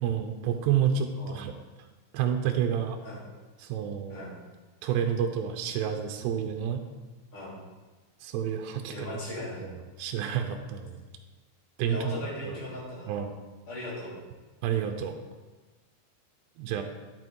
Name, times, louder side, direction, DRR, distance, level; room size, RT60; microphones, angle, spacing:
voice 1, 0.0-1.5 2.1-3.0 3.6-4.3 4.8-6.8 8.2-9.1 9.6-11.0 11.8-12.2 12.4-12.6 13.1-13.3 14.6-15.2 16.6-16.8, right 8 dB, 80° right, 5 dB, 2.6 m, -29 dB
voice 2, 8.9-9.6 11.9-13.1 13.7-14.1, left 1 dB, 45° left, -6 dB, 4.0 m, -38 dB
11.0 x 8.0 x 4.6 m, 1.3 s
omnidirectional pair, 5.5 m